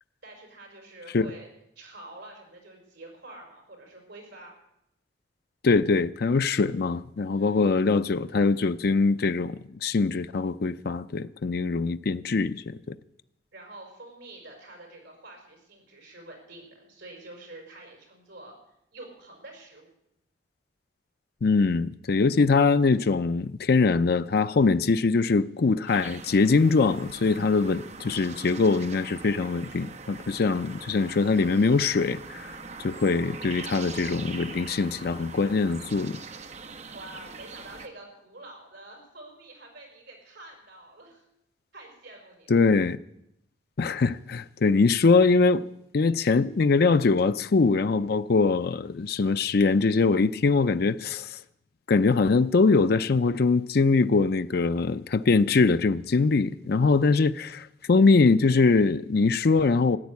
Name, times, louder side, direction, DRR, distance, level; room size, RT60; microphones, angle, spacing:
voice 1, 0.2-1.5 1.8-4.5 7.3-7.6 13.5-18.6 18.9-19.9 36.9-41.2 41.7-42.5, right 2 dB, 65° right, 5.6 m, -47 dB
voice 2, 5.6-12.9 21.4-32.5 32.8-36.2 42.5-43.0 43.8-45.6 45.9-51.4 51.9-60.0, left 4 dB, 55° left, 0.5 m, -22 dB
sound 1, 25.9-37.9, right 4 dB, 35° right, 0.9 m, -42 dB
14.5 x 9.7 x 8.3 m
head